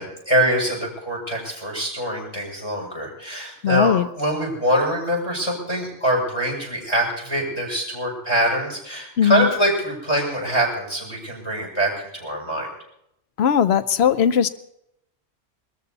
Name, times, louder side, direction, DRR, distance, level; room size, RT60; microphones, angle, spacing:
voice 1, 0.0-12.7, right 1 dB, 25° left, -1 dB, 7.6 m, -24 dB
voice 2, 3.6-4.1 9.2-9.5 13.4-14.5, left 8 dB, 70° left, 13 dB, 1.0 m, -18 dB
22.0 x 13.5 x 4.1 m, 0.77 s
omnidirectional pair, 1.2 m